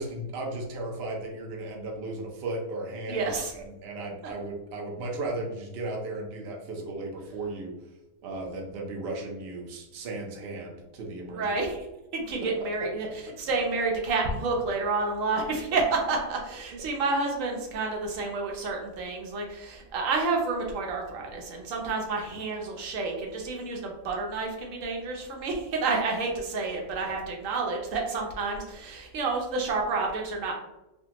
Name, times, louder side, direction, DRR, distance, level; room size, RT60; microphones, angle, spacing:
voice 1, 0.0-7.7 8.2-11.5 12.6-13.1 16.7-16.8 22.5-22.6 27.0-27.1, right 2 dB, 85° right, 0 dB, 0.5 m, -36 dB
voice 2, 3.1-3.5 11.4-11.9 12.1-30.5, right 3 dB, 65° right, 0 dB, 0.9 m, -29 dB
3.4 x 2.2 x 2.8 m, 0.97 s
omnidirectional pair, 1.7 m